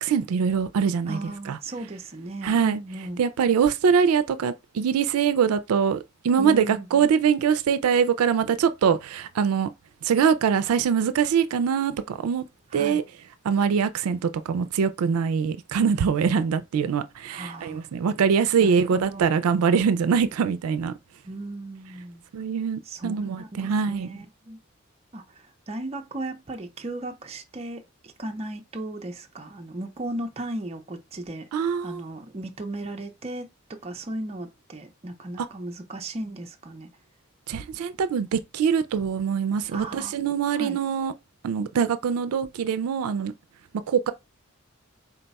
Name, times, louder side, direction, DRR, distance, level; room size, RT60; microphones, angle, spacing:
voice 1, 0.0-1.2 1.5-1.6 2.4-2.8 3.2-9.7 10.0-12.4 12.7-13.0 13.4-20.9 22.3-24.1 31.5-32.0 35.4-35.5 37.5-41.1 41.4-43.3 43.9-44.1, right 6 dB, 90° right, 0.4 m, -23 dB
voice 2, 1.1-3.2 6.4-7.1 12.7-13.0 17.3-17.9 18.6-19.4 21.2-22.2 22.8-24.6 25.1-36.9 39.7-40.2 40.5-40.8, right 1 dB, 30° right, 0.4 m, -36 dB
3.9 x 2.2 x 4.0 m
head